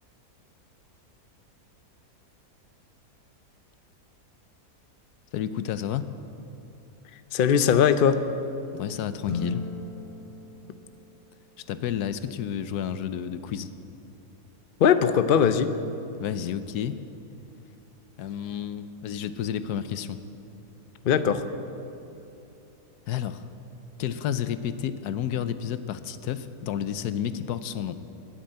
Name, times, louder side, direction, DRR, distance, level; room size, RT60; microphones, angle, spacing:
voice 1, 5.3-6.1 8.7-9.6 11.7-13.7 16.2-17.0 18.2-20.2 23.1-23.4 24.0-28.0, left 9 dB, 80° left, 12 dB, 1.2 m, -31 dB
voice 2, 7.3-8.2 14.8-15.7 21.0-21.4, left 8 dB, 60° left, 10 dB, 0.5 m, -20 dB
sound 1, 9.2-11.7, left 3 dB, 25° left, 0.9 m, -36 dB
13.0 x 10.5 x 9.1 m, 2.9 s
omnidirectional pair, 1.7 m